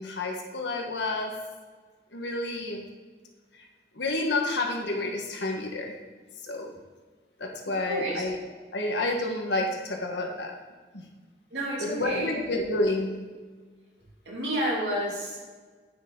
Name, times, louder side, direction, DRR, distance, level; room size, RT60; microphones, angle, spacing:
voice 1, 0.0-1.5 2.1-2.8 3.9-5.9 6.4-6.7 7.4-8.4 8.7-10.5 10.9-11.0 11.8-13.2, left 2 dB, 85° left, 1 dB, 1.4 m, -29 dB
voice 2, 7.9-8.2 11.5-12.3 14.2-15.4, right 1 dB, 75° right, -5 dB, 2.8 m, -30 dB
9.3 x 6.4 x 3.8 m, 1.4 s
head